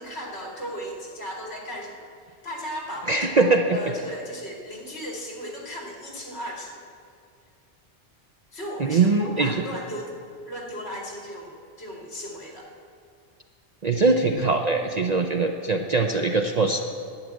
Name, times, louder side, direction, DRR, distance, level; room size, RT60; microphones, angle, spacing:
voice 1, 0.0-6.8 8.5-10.2 10.5-12.7, equal, 60° left, -2 dB, 2.7 m, -36 dB
voice 2, 3.1-3.8 8.8-9.7 13.8-16.8, right 3 dB, 45° right, 4 dB, 0.6 m, -22 dB
11.5 x 7.6 x 9.0 m, 2.3 s
omnidirectional pair, 1.2 m